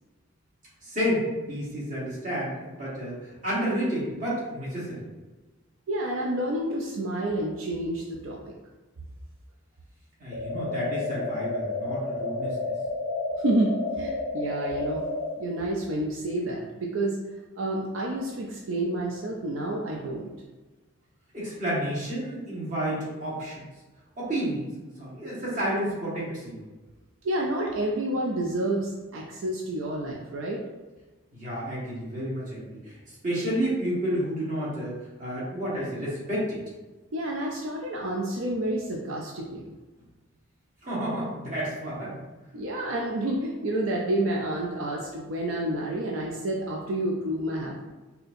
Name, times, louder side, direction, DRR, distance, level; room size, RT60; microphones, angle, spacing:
voice 1, 0.8-5.0 10.2-12.7 21.3-23.6 24.2-24.7 25.0-26.6 31.3-32.9 33.2-36.6 40.8-42.2, equal, 40° right, -8 dB, 1.4 m, -30 dB
voice 2, 5.9-8.5 13.4-15.0 15.3-17.2 17.6-20.3 27.2-30.6 37.1-39.7 42.5-47.9, right 1 dB, 80° right, -1 dB, 0.5 m, -29 dB
sound 1, 10.3-15.3, left 2 dB, 85° left, 0.4 m, -31 dB
4.1 x 2.8 x 2.6 m, 1.2 s
head